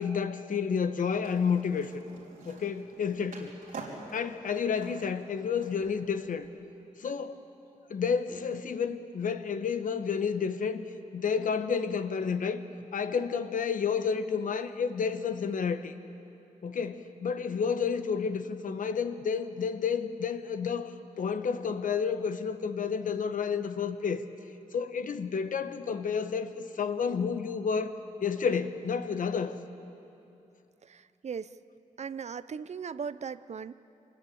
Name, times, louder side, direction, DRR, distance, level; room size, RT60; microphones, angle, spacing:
voice 1, 0.0-1.9 2.4-3.5 4.1-6.5 7.0-7.4 7.9-10.8 11.1-12.6 12.9-15.9 16.6-24.2 24.7-29.6, left 6 dB, 75° left, 9 dB, 1.2 m, -30 dB
Skateboard, 1.2-6.5, right 3 dB, 85° right, 3.7 m, -48 dB
voice 2, 30.8-31.5 32.0-33.7, right 6 dB, 55° right, 15 dB, 0.6 m, -38 dB
24.5 x 20.5 x 8.6 m, 2.8 s
cardioid pair, 85°, 14 cm